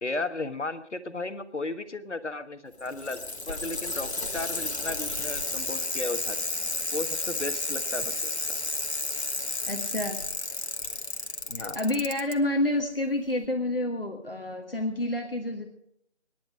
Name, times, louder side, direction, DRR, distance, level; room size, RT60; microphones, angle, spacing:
voice 1, 0.0-6.4 6.9-8.6 11.5-11.8, left 2 dB, 90° left, 10 dB, 1.4 m, -35 dB
Bicycle, 2.7-12.3 13.4-13.5, left 2 dB, 70° left, 1.5 m, -32 dB
voice 2, 9.7-10.2 11.6-15.7, left 1 dB, 55° left, 3 dB, 1.6 m, -29 dB
23.0 x 10.5 x 4.9 m, 0.72 s
figure-of-eight pair, 175°, 34 cm